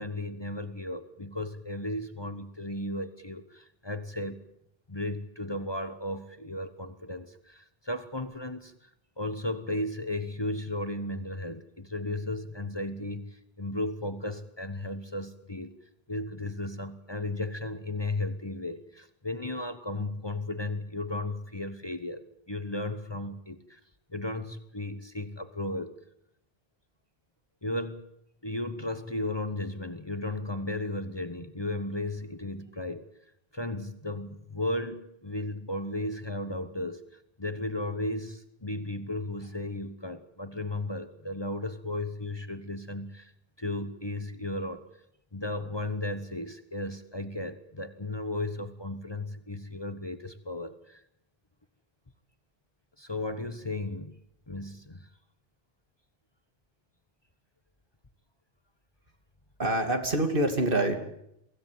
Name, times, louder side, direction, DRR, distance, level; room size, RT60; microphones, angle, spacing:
voice 1, 0.0-4.4 4.9-8.9 9.2-15.7 16.1-23.8 24.1-25.9 27.6-28.1 28.4-33.0 33.5-43.3 43.6-44.8 45.3-51.0 53.0-54.2 54.5-55.1, left 1 dB, 25° left, 10 dB, 1.2 m, -35 dB
voice 2, 59.6-61.0, right 1 dB, 60° right, 5 dB, 2.9 m, -26 dB
23.5 x 16.5 x 9.3 m, 0.78 s
omnidirectional pair, 1.0 m